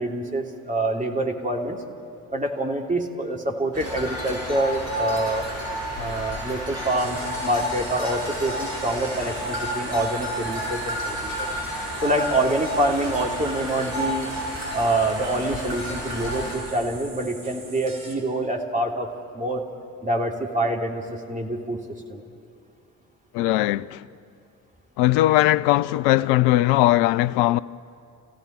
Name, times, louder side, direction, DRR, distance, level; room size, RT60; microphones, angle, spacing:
voice 1, 0.0-1.8 2.3-5.5 5.9-11.5 12.0-14.3 14.7-19.6 20.0-21.8 22.1-22.2, right 1 dB, 15° right, 3.0 m, -26 dB
sound 1, 3.7-16.6, equal, 70° right, 6.9 m, -31 dB
sound 2, 7.0-18.2, right 2 dB, 45° right, 4.6 m, -42 dB
voice 2, 23.3-24.1 25.0-27.6, left 16 dB, 60° left, 0.6 m, -19 dB
28.0 x 16.0 x 8.7 m
figure-of-eight pair, 45°, 45 cm